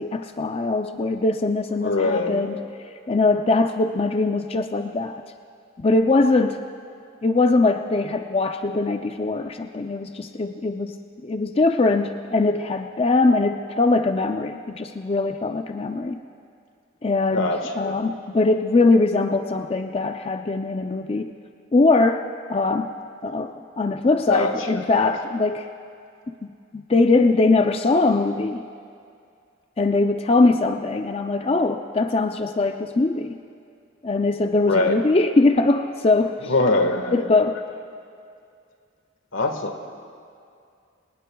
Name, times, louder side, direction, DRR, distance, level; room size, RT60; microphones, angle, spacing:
voice 1, 0.0-2.7 3.1-5.2 5.8-6.6 7.2-16.2 17.0-21.3 21.7-22.9 23.2-25.7 26.3-26.4 26.7-28.6 29.8-33.4 34.0-36.5 37.1-37.6, left 3 dB, 30° left, 6 dB, 0.4 m, -21 dB
voice 2, 1.8-2.4 17.3-18.0 24.3-25.1 34.6-35.0 36.5-37.2 39.3-39.7, left 2 dB, 85° left, 5 dB, 1.5 m, -23 dB
25.5 x 19.5 x 2.3 m, 2.4 s
head